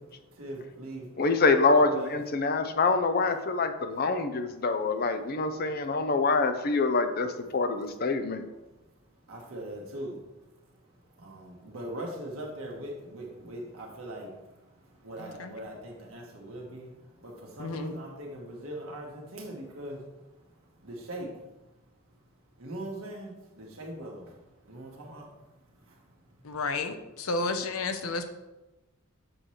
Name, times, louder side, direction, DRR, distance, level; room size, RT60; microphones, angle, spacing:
voice 1, 0.0-1.1 1.8-2.2 9.3-10.2 11.1-20.1 20.8-21.4 22.6-24.4 24.6-25.3 25.7-26.0, right 1 dB, 70° right, -1 dB, 1.6 m, -41 dB
voice 2, 1.2-8.4, left 3 dB, 45° left, 8 dB, 0.6 m, -25 dB
voice 3, 15.2-15.5 17.6-18.0 26.4-28.3, left 3 dB, 80° left, 7 dB, 0.7 m, -32 dB
7.7 x 3.2 x 5.7 m, 1.0 s
head